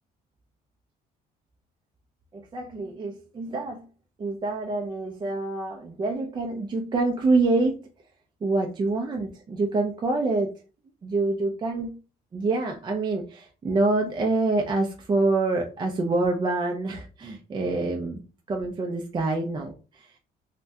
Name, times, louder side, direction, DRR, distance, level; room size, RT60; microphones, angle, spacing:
voice 1, 2.3-3.9 4.2-7.8 8.4-10.5 11.0-12.0 12.3-18.2 18.5-20.2, right 3 dB, 25° right, 1 dB, 0.4 m, -26 dB
3.3 x 2.1 x 2.7 m, 0.34 s
cardioid pair, 110°, 17 cm